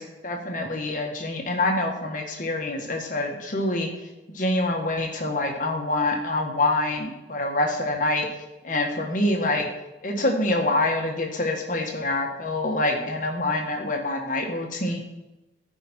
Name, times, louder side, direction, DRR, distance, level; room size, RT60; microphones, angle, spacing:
voice 1, 0.0-3.9 4.3-8.3 8.6-9.7 10.0-15.0, left 2 dB, 45° left, 2 dB, 1.6 m, -26 dB
15.0 x 5.2 x 4.4 m, 0.99 s
head